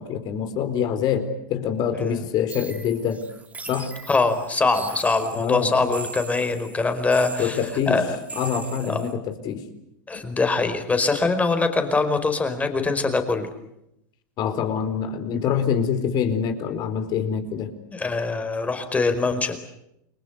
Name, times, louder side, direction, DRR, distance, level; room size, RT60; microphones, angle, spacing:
voice 1, 0.0-3.2 3.6-3.9 5.3-6.0 7.4-8.0 8.4-9.6 14.4-17.7, left 7 dB, 45° left, 9 dB, 4.5 m, -25 dB
sound 1, 2.5-9.1, right 4 dB, 15° right, 3.3 m, -39 dB
voice 2, 4.1-7.6 7.9-8.2 8.9-9.0 10.1-13.5 17.9-19.6, left 3 dB, 15° left, 8 dB, 4.8 m, -23 dB
30.0 x 22.5 x 8.2 m, 0.82 s
supercardioid pair, 120°, 10 cm